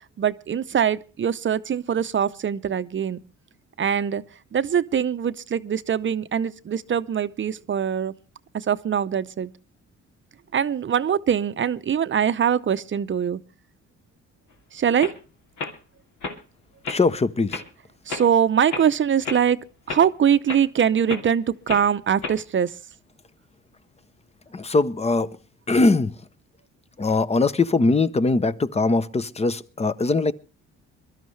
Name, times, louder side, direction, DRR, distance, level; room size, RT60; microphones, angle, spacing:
voice 1, 0.2-3.2 3.8-4.2 4.5-8.1 8.5-9.5 10.5-13.4 14.7-15.1 18.1-19.6 19.9-22.7, right 8 dB, 40° right, 0.7 m, -22 dB
sound 1, 14.5-14.6 15.0-15.2 15.6-15.7 16.2-16.4 16.8-17.0 17.5-17.6 18.1-18.3 18.7-18.9 19.2-19.4 19.9-20.0 20.5-20.6 21.1-21.3 21.7-21.9 22.2-22.4, left 4 dB, 70° left, 2.7 m, -31 dB
voice 2, 16.9-17.6 24.5-25.3 25.7-26.1 27.0-30.3, left 3 dB, 20° left, 0.7 m, -21 dB
22.5 x 12.5 x 3.2 m
cardioid pair, 90°, 30 cm